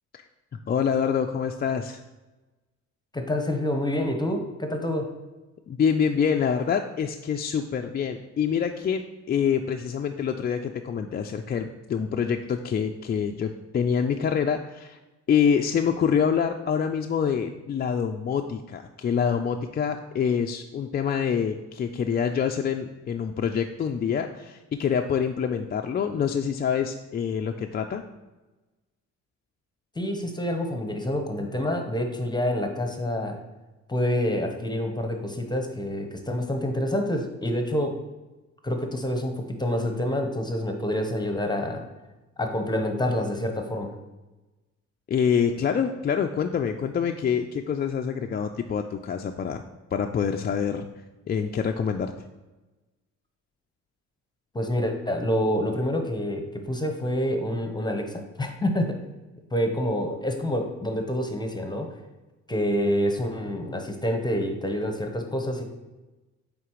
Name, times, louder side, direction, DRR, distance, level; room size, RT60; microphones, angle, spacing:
voice 1, 0.7-2.0 5.7-15.0 15.3-28.0 45.1-49.6 49.9-50.9 51.3-52.1, left 7 dB, 35° left, 3 dB, 0.4 m, -26 dB
voice 2, 3.1-5.1 30.0-33.4 33.9-38.0 38.6-41.9 42.4-43.9 54.5-59.0 59.5-61.9 62.5-65.6, left 1 dB, 15° left, 4 dB, 0.8 m, -27 dB
8.4 x 3.8 x 3.1 m, 1.1 s
cardioid pair, 90°, 30 cm